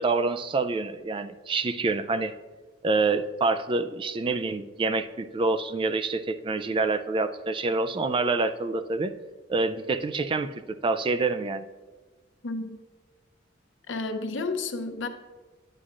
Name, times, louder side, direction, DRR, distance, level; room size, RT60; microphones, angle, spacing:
voice 1, 0.0-2.4 2.8-9.1 9.5-11.7, right 3 dB, 25° right, 10 dB, 0.3 m, -27 dB
voice 2, 12.4-12.8 13.9-15.1, left 3 dB, 80° left, 6 dB, 0.8 m, -31 dB
9.9 x 9.6 x 2.5 m, 1.3 s
head